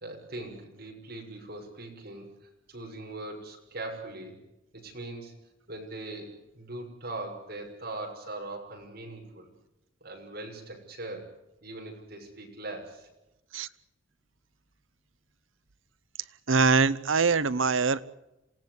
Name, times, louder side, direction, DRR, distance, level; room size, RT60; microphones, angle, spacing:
voice 1, 0.0-2.3 2.7-4.4 4.7-5.3 5.7-9.5 10.0-11.3 11.6-13.1, right 2 dB, 50° right, 1 dB, 6.4 m, -40 dB
voice 2, 16.5-18.1, right 4 dB, 80° right, 15 dB, 0.9 m, -23 dB
27.5 x 17.5 x 8.2 m, 0.94 s
head